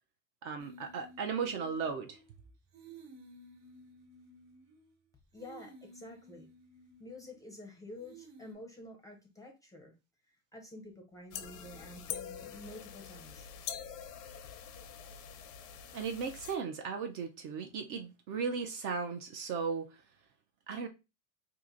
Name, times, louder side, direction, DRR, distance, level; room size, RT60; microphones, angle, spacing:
voice 1, 0.4-2.2 15.9-19.9 20.7-20.9, right 5 dB, 40° right, 0.5 m, -36 dB
sound 1, 0.6-2.4 2.7-4.9 5.3-7.5 8.0-8.5, right 2 dB, 65° right, 1.3 m, -55 dB
voice 2, 5.3-6.5 7.0-9.9 10.3-13.5, left 2 dB, 5° left, 0.5 m, -49 dB
sound 2, 11.3-16.6, left 9 dB, 90° left, 0.8 m, -45 dB
2.8 x 2.5 x 3.6 m
supercardioid pair, 135°, 47 cm